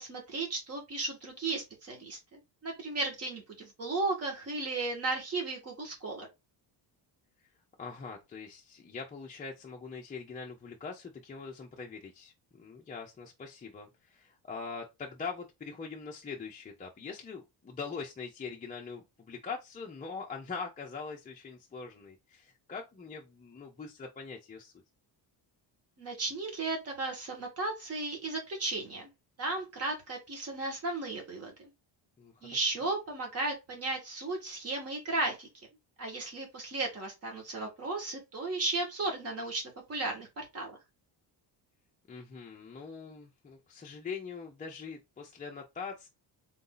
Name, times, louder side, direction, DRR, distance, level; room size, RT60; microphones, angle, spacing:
voice 1, 0.0-6.3 26.0-29.1 29.4-31.7 32.4-35.5 36.0-39.6 39.9-40.8, right 2 dB, 30° right, 1.6 m, -35 dB
voice 2, 7.8-24.8 32.2-32.7 42.1-46.1, left 5 dB, 20° left, 0.5 m, -43 dB
3.9 x 2.7 x 3.8 m
cardioid pair, 170°, 45 cm